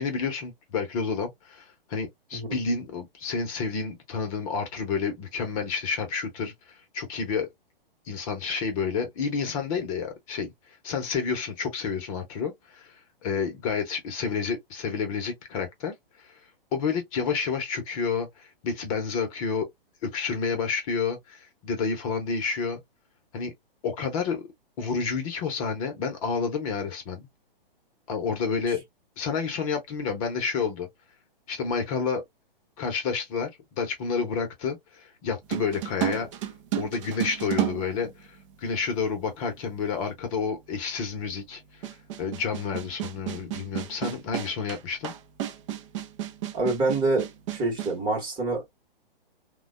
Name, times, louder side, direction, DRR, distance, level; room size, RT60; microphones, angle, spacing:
voice 1, 0.0-7.5 8.1-10.5 10.8-13.0 13.2-16.4 16.7-19.7 20.0-22.8 23.3-23.5 23.8-24.5 24.8-27.3 28.1-28.8 29.2-30.9 31.5-32.2 32.8-36.3 36.7-41.9 42.2-45.1, left 5 dB, 35° left, 0.8 m, -30 dB
sound 1, 35.5-38.7 39.6-39.7 41.8-48.0, right 12 dB, 35° right, 0.5 m, -32 dB
voice 2, 46.5-48.7, right 2 dB, 15° right, 1.0 m, -27 dB
3.2 x 2.2 x 2.3 m
hypercardioid pair, 125°, 29 cm